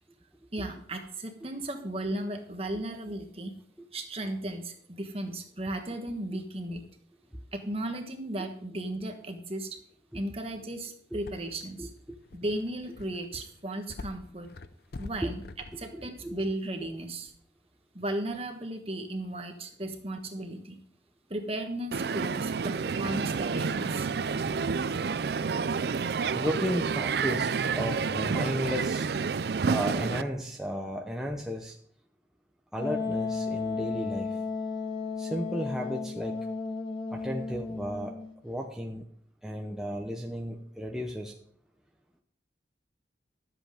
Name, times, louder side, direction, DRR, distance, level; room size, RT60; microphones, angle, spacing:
voice 1, 0.5-3.5 3.9-6.8 7.5-9.8 10.1-11.9 12.3-14.5 15.0-15.4 15.8-17.3 17.9-20.8 21.3-24.1, right 1 dB, 30° right, 5 dB, 1.4 m, -35 dB
sound 1, 11.3-15.8 17.3-17.4, left 3 dB, 60° left, 0.6 m, -45 dB
voice 2, 15.9-16.4 19.8-19.9 26.3-29.1 29.7-31.8 32.7-34.4 35.2-36.4 37.1-38.2 38.4-39.0 39.4-41.3, equal, 5° right, 0 dB, 0.8 m, -34 dB
Crowd, 21.9-30.2, right 5 dB, 60° right, 0.4 m, -29 dB
Wind instrument woodwind instrument, 32.8-38.3, left 4 dB, 25° left, 1.7 m, -34 dB
12.5 x 8.0 x 5.0 m, 0.63 s
head